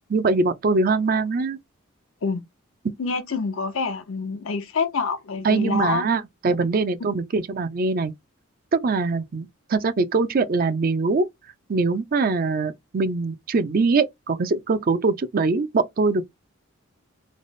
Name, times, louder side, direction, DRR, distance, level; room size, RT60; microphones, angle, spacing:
voice 1, 0.1-1.6 2.8-2.9 5.4-8.1 8.7-11.3 11.7-16.3, right 3 dB, 45° right, 0.5 m, -22 dB
voice 2, 3.0-6.1, left 4 dB, 80° left, 0.6 m, -26 dB
3.2 x 2.0 x 4.0 m
head